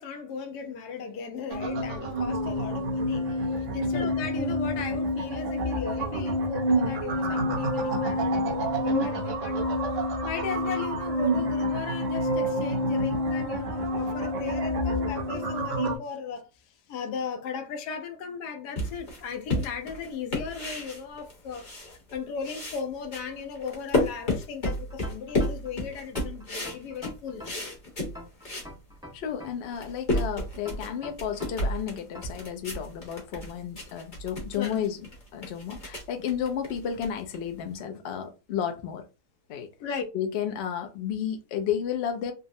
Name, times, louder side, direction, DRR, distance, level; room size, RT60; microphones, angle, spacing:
voice 1, 0.0-9.7 10.2-16.5 16.9-21.6 21.9-27.6 34.6-34.8 39.8-40.1, left 6 dB, 85° left, 1.2 m, -36 dB
sound 1, 1.5-16.0, equal, 65° right, 0.8 m, -28 dB
sound 2, 18.8-22.2 22.4-28.7 29.2-29.3 29.6-37.7, left 1 dB, 35° left, 1.0 m, -32 dB
sound 3, 24.7-25.7 26.2-27.7 28.2-29.7 30.2-31.7 32.2-32.5, left 1 dB, 5° right, 0.7 m, -44 dB
voice 2, 29.1-39.0 39.5-39.7 40.1-42.3, left 8 dB, 65° left, 0.6 m, -32 dB
3.5 x 2.0 x 2.6 m
omnidirectional pair, 1.7 m